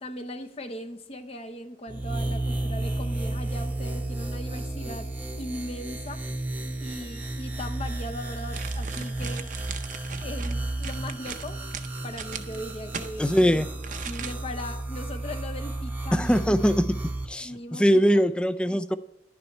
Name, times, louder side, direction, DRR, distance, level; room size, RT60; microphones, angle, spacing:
voice 1, 0.0-5.1 5.4-6.2 6.8-9.5 10.2-11.6 12.0-13.6 14.0-16.5 17.4-18.0, left 1 dB, 35° left, 7 dB, 0.8 m, -38 dB
sound 1, 1.9-17.3, right 2 dB, 10° right, 0.8 m, -33 dB
sound 2, 8.5-13.1 13.8-14.6 15.0-15.1, right 6 dB, 45° right, 0.6 m, -38 dB
voice 2, 13.2-13.7 16.1-16.8 17.3-19.0, equal, 5° left, 13 dB, 0.3 m, -22 dB
11.0 x 6.9 x 4.3 m, 0.88 s
head